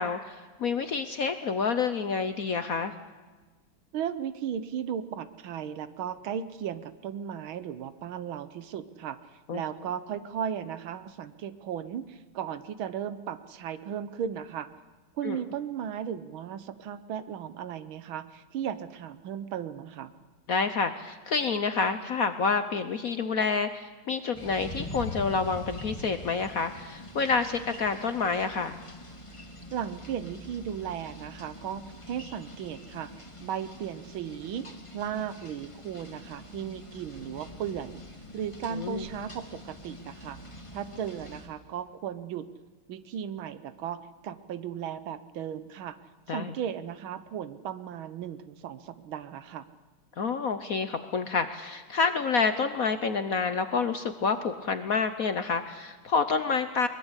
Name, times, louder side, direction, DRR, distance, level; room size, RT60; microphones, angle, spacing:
voice 1, 0.0-2.9 9.5-9.6 15.2-15.4 20.5-28.8 38.7-39.1 46.3-46.5 50.2-56.9, left 5 dB, 55° left, 10 dB, 1.0 m, -28 dB
voice 2, 3.9-14.7 15.2-20.1 29.7-33.1 33.4-34.7 34.9-38.0 38.3-42.5 42.9-46.0 46.3-49.7, right 9 dB, 75° right, 13 dB, 1.7 m, -36 dB
sound 1, 24.3-41.5, left 1 dB, 15° left, 1.9 m, -44 dB
22.5 x 21.0 x 8.1 m, 1.3 s
omnidirectional pair, 2.3 m